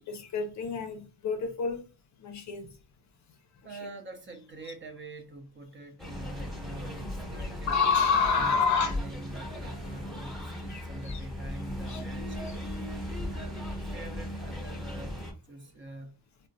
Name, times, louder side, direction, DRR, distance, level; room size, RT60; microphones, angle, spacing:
voice 1, 0.1-1.8 2.2-2.7 7.4-9.0 10.7-11.2 11.9-12.0 12.5-12.6, left 5 dB, 45° left, 0.6 m, -28 dB
voice 2, 3.6-7.8 8.3-12.6 13.1-15.2 15.5-16.1, right 2 dB, 30° right, 0.7 m, -45 dB
sound 1, 6.0-15.3, left 1 dB, ahead, 0.9 m, -37 dB
3.6 x 2.1 x 2.6 m
cardioid pair, 115°, 39 cm